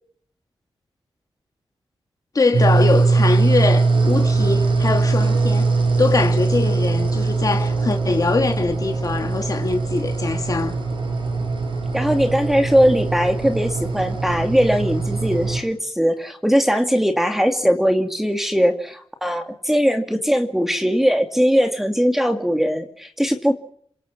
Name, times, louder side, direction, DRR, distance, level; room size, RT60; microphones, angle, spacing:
voice 1, 2.3-5.7 6.0-10.8, left 3 dB, 40° left, 2.7 m, -22 dB
sound 1, 2.5-15.6, right 3 dB, 60° right, 6.4 m, -21 dB
voice 2, 11.9-23.5, equal, 5° right, 2.4 m, -20 dB
29.0 x 25.5 x 6.1 m
wide cardioid pair, 155°, 10 cm